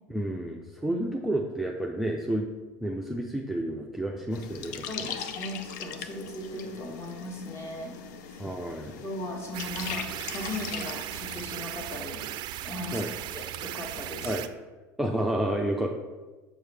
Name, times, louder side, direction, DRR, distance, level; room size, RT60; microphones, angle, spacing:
voice 1, 0.1-2.5 2.8-4.9 8.4-9.0 12.9-13.1 14.2-14.4 15.0-15.9, right 1 dB, ahead, 0 dB, 0.5 m, -30 dB
sound 1, 4.3-11.4, left 7 dB, 75° left, 0.5 m, -40 dB
voice 2, 4.8-8.0 8.3-8.4 9.0-12.2 12.6-13.0 13.3-14.4, left 1 dB, 25° left, 1 dB, 1.5 m, -38 dB
sound 2, 9.5-14.5, right 12 dB, 50° right, 0.4 m, -37 dB
6.4 x 4.7 x 3.4 m, 1.2 s
hypercardioid pair, 85°, 10 cm